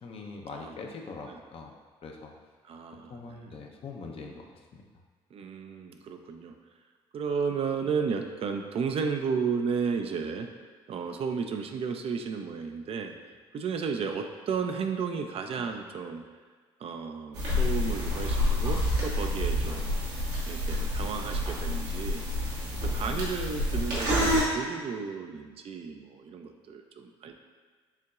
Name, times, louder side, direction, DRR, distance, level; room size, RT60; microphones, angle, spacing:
voice 1, 0.0-1.7 2.0-2.3 3.1-4.5 4.7-4.8 22.6-23.2, left 4 dB, 50° left, 1 dB, 0.6 m, -43 dB
voice 2, 2.6-3.5 4.2-4.4 5.3-6.5 7.1-10.5 10.9-13.1 13.5-16.2 16.8-20.0 20.5-22.2 22.7-27.3, right 5 dB, 50° right, 5 dB, 0.4 m, -33 dB
sound 1, 17.3-24.4, left 1 dB, 80° right, 1.1 m, -28 dB
5.5 x 2.9 x 2.4 m, 1.5 s
hypercardioid pair, 55°, 13 cm